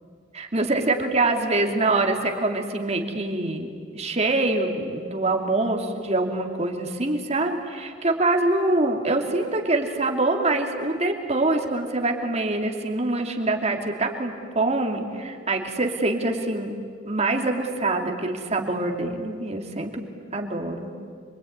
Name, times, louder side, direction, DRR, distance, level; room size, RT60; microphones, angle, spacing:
voice 1, 0.3-3.7 3.9-16.7 17.1-19.9 20.3-20.9, right 2 dB, 35° right, 3 dB, 2.6 m, -25 dB
26.5 x 24.0 x 9.4 m, 2.1 s
head